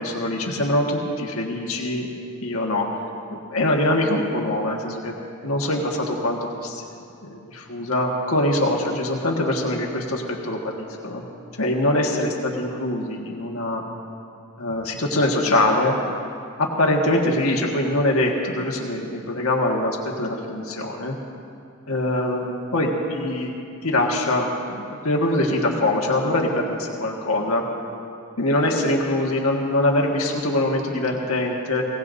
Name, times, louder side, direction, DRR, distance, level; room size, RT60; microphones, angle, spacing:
voice 1, 0.0-2.1 2.4-2.9 3.5-5.2 5.4-6.8 7.2-11.2 11.6-13.8 14.6-16.0 16.6-21.1 21.9-23.5 23.8-27.6 28.4-31.8, left 1 dB, 85° left, -1 dB, 1.6 m, -23 dB
22.5 x 18.0 x 2.7 m, 2.6 s
head